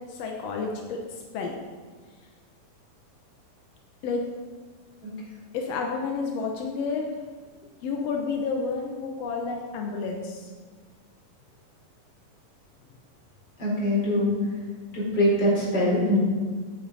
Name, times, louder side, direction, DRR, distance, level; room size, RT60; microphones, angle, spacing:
voice 1, 0.1-1.0 1.3-1.6 4.0-4.2 5.5-7.1 7.8-10.5, left 4 dB, 70° left, 1 dB, 1.5 m, -30 dB
voice 2, 13.6-14.3 14.9-16.2, left 1 dB, 30° left, -6 dB, 5.0 m, -23 dB
16.5 x 8.6 x 4.1 m, 1.5 s
omnidirectional pair, 4.2 m